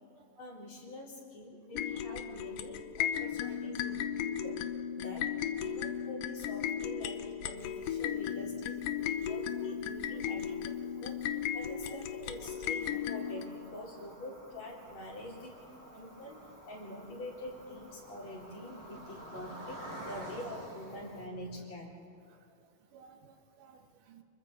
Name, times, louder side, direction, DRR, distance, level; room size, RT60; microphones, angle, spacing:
voice 1, 0.4-4.6 4.9-5.3 5.6-10.5 10.8-15.6 15.9-21.9, left 1 dB, 55° left, -3 dB, 5.0 m, -46 dB
sound 1, 1.7-13.5, left 9 dB, 90° left, 2.5 m, -35 dB
voice 2, 3.2-4.0 5.7-5.9 9.2-9.8 10.1-10.5 11.8-11.9 12.4-12.5 15.9-16.0 19.2-19.5 19.9-20.0 22.3-24.2, right 5 dB, 80° right, 5 dB, 3.0 m, -55 dB
Cricket, 7.6-21.3, right 1 dB, 25° right, 5.9 m, -51 dB
30.0 x 22.0 x 4.0 m, 2.7 s
omnidirectional pair, 3.8 m